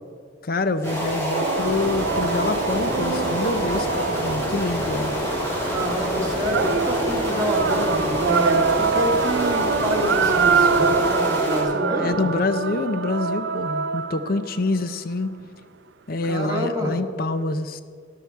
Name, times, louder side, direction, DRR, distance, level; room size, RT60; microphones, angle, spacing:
voice 1, 0.4-5.1 11.9-15.3 16.1-17.8, left 2 dB, 50° left, 11 dB, 0.6 m, -26 dB
sound 1, 0.8-11.6, equal, 15° left, 3.8 m, -26 dB
sound 2, 1.3-5.1 6.5-14.6, right 5 dB, 70° right, 0.5 m, -24 dB
voice 2, 5.7-12.3 16.3-16.9, equal, 20° right, -3 dB, 1.9 m, -27 dB
13.5 x 12.0 x 4.6 m, 2.2 s
head